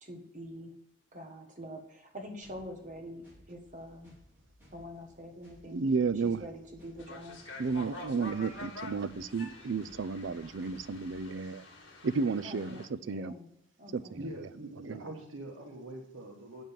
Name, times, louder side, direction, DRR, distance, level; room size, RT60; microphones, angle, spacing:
voice 1, 0.0-0.7 1.1-4.1 4.7-5.8 6.2-7.4 12.4-13.5 13.8-14.2, equal, 35° right, 1.5 m, -45 dB
sound 1, 2.4-11.2, left 1 dB, 10° right, 4.7 m, -60 dB
voice 2, 5.6-6.4 7.6-11.6 12.0-13.3 13.9-14.2 14.9-15.0, right 4 dB, 65° right, 0.5 m, -32 dB
sound 2, 7.0-12.9, left 2 dB, 60° left, 1.9 m, -48 dB
voice 3, 14.1-16.6, right 1 dB, 85° right, 1.6 m, -43 dB
7.8 x 6.9 x 7.4 m
head